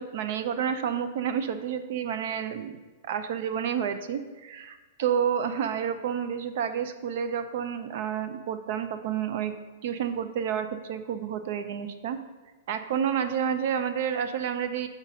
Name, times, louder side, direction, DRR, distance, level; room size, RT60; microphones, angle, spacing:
voice 1, 0.0-2.7 3.1-9.5 9.8-12.2 12.7-14.9, right 8 dB, 55° right, 10 dB, 0.5 m, -30 dB
5.0 x 4.2 x 6.0 m, 1.3 s
supercardioid pair, 160°, 0 cm